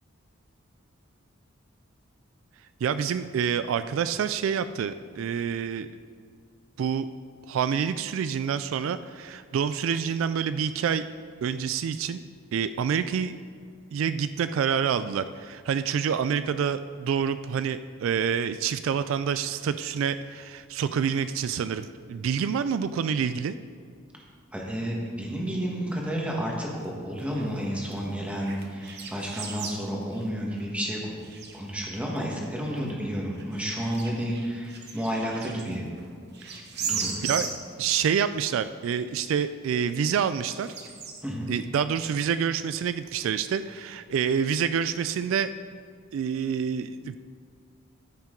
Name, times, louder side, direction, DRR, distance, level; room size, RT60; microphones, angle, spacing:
voice 1, 2.8-5.9 6.8-7.1 7.5-11.0 11.4-12.2 12.5-13.4 13.9-23.5 37.2-37.5 37.8-40.7 41.5-45.5 46.1-47.2, right 7 dB, 75° right, 12 dB, 0.3 m, -27 dB
voice 2, 24.5-31.2 31.5-35.8 36.8-37.1 41.2-41.5, equal, 5° right, -2 dB, 1.5 m, -31 dB
sound 1, 26.8-26.9 27.2-27.6 27.8-29.8 30.1-30.9 31.2-31.6 32.2-32.3 32.8-32.9 33.3-36.1 36.3-38.1 38.6-38.7 39.5-39.6 40.4-41.2, right 6 dB, 55° right, 1.1 m, -36 dB
13.5 x 5.9 x 3.8 m, 2.2 s
head